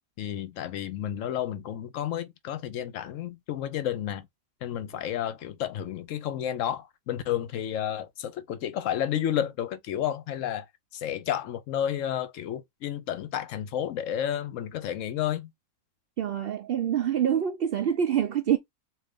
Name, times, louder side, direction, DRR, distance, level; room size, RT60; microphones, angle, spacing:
voice 1, 0.2-4.3 4.6-10.7 10.9-15.5, left 10 dB, 70° left, 0.9 m, -31 dB
voice 2, 16.2-18.6, right 9 dB, 75° right, 0.5 m, -26 dB
3.8 x 2.6 x 3.5 m
omnidirectional pair, 1.5 m